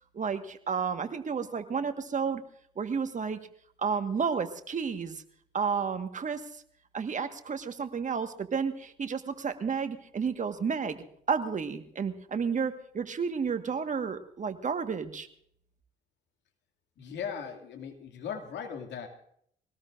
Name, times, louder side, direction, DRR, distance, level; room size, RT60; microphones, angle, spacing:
voice 1, 0.1-2.4 2.8-3.4 3.8-5.2 5.5-6.6 6.9-11.0 11.3-15.3, right 6 dB, 40° right, 8 dB, 1.6 m, -31 dB
voice 2, 17.0-19.1, left 7 dB, 65° left, 4 dB, 2.5 m, -38 dB
23.5 x 18.5 x 2.6 m, 0.66 s
hypercardioid pair, 50°, 20 cm